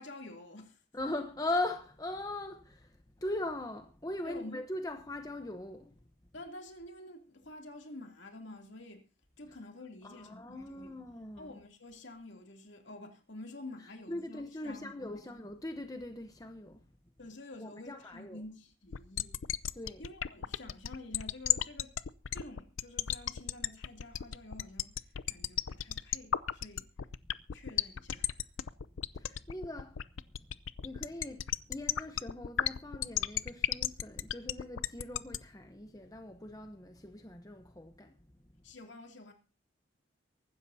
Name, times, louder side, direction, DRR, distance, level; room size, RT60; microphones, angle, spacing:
voice 1, 0.0-0.8 4.2-4.6 6.3-9.1 9.4-11.0 11.4-15.3 17.2-19.4 20.0-22.0 22.3-26.9 27.5-28.5 38.6-39.3, left 2 dB, 65° left, 2.8 m, -49 dB
voice 2, 0.9-5.9 10.0-11.6 14.1-16.9 17.6-18.4 19.7-20.0 29.1-30.0 30.8-38.2, left 2 dB, 20° left, 0.8 m, -40 dB
sound 1, 18.9-35.4, left 10 dB, 85° left, 0.6 m, -33 dB
23.5 x 12.5 x 2.7 m
head